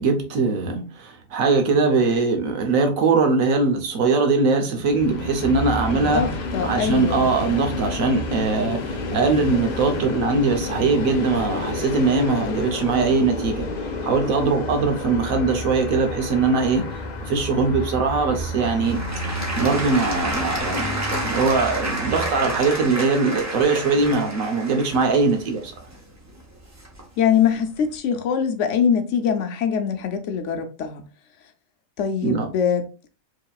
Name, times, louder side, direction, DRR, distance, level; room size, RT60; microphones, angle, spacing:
voice 1, 0.0-6.3 6.6-13.7 14.0-16.9 17.2-19.0 19.6-25.7 32.2-32.5, right 4 dB, 85° right, 1.2 m, -21 dB
Train, 4.8-22.9, left 2 dB, 50° left, 0.5 m, -30 dB
voice 2, 5.9-7.3 27.2-31.0 32.0-32.8, left 7 dB, 70° left, 0.9 m, -23 dB
Applause / Crowd, 18.4-27.3 27.9-28.0, right 1 dB, 15° right, 0.7 m, -30 dB
4.7 x 2.9 x 2.3 m
omnidirectional pair, 1.4 m